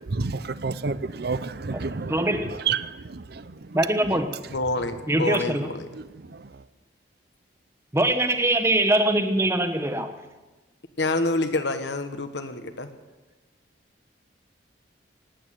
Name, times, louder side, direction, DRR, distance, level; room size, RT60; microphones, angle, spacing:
voice 1, 0.0-3.5 6.3-6.4, right 4 dB, 55° right, 0.7 m, -30 dB
voice 2, 2.1-2.6 3.7-4.4 5.1-5.7 7.9-10.1, right 1 dB, 15° right, 1.2 m, -23 dB
voice 3, 4.5-5.9 11.0-12.9, left 2 dB, 65° left, 1.4 m, -27 dB
18.5 x 8.6 x 9.1 m
head